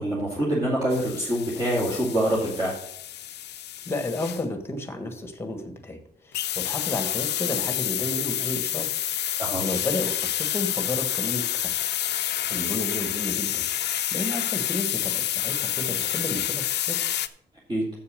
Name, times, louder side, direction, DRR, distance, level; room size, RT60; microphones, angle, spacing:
voice 1, 0.0-2.7 9.4-9.6 17.7-17.8, right 1 dB, 25° right, -6 dB, 2.3 m, -25 dB
sound 1, 0.9-4.4 6.3-17.3, left 12 dB, 90° left, 0.6 m, -28 dB
voice 2, 3.9-6.0 6.2-8.9 9.3-11.7 12.3-17.0, left 2 dB, 15° left, 6 dB, 1.4 m, -32 dB
7.6 x 6.8 x 6.5 m, 0.72 s
wide cardioid pair, 170°, 17 cm